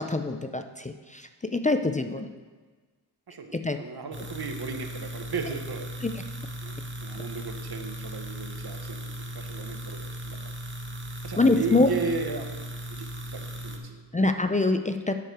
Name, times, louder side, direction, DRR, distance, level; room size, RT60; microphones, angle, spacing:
voice 1, 0.0-2.3 3.5-3.8 6.0-6.1 7.1-7.2 11.4-11.9 14.1-15.1, left 2 dB, 20° left, 7 dB, 0.4 m, -25 dB
voice 2, 3.3-6.1 6.6-10.5 11.1-12.6 12.9-14.0, right 4 dB, 70° right, 5 dB, 1.0 m, -36 dB
sound 1, 4.1-13.8, right 1 dB, 30° right, 0.9 m, -37 dB
9.1 x 6.6 x 4.6 m, 1.3 s
wide cardioid pair, 100°, 39 cm